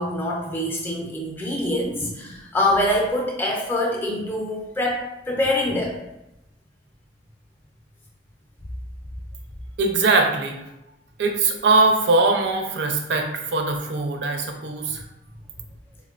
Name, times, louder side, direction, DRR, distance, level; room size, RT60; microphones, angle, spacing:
voice 1, 0.0-6.0, left 1 dB, 10° left, -2 dB, 0.4 m, -24 dB
voice 2, 9.8-10.6 11.2-15.0, right 3 dB, 65° right, 4 dB, 0.4 m, -21 dB
4.3 x 2.1 x 2.3 m, 0.91 s
head